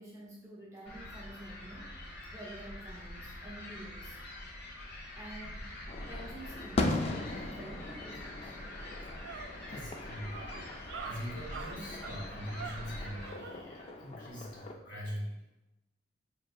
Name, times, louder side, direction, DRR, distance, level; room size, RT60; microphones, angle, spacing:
voice 1, 0.0-4.2 5.1-8.5 9.6-9.7, right 1 dB, 15° right, -4 dB, 0.5 m, -49 dB
sound 1, 0.8-13.3, left 1 dB, 60° left, 0.9 m, -45 dB
sound 2, 5.9-14.7, left 2 dB, 35° left, 0.3 m, -39 dB
sound 3, 8.6-13.6, right 5 dB, 80° right, 0.4 m, -46 dB
voice 2, 9.7-15.3, equal, 80° left, -4 dB, 1.4 m, -42 dB
5.7 x 2.7 x 2.3 m, 0.96 s
head